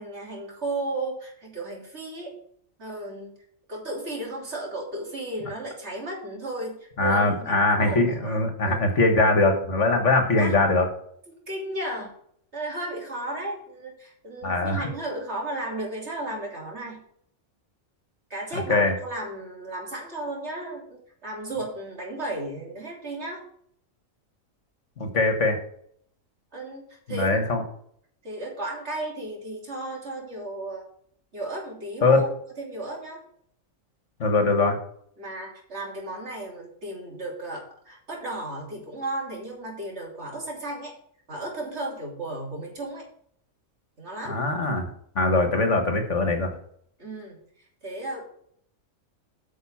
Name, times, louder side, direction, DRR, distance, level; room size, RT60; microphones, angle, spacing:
voice 1, 0.0-2.4 2.8-3.3 3.7-8.9 10.4-10.6 11.5-12.1 12.5-17.0 18.3-23.4 26.5-27.4 28.2-30.9 31.3-32.3 32.6-33.2 35.2-40.9 41.3-43.0 44.0-44.4 47.0-47.4 47.8-48.2, right 2 dB, 50° right, -1 dB, 3.2 m, -34 dB
voice 2, 7.0-10.9 14.4-14.9 18.5-18.9 25.0-25.6 27.1-27.6 32.0-32.2 34.2-34.8 44.3-44.9 45.2-46.5, left 2 dB, 60° left, 5 dB, 1.8 m, -22 dB
9.4 x 5.5 x 7.2 m, 0.66 s
omnidirectional pair, 1.4 m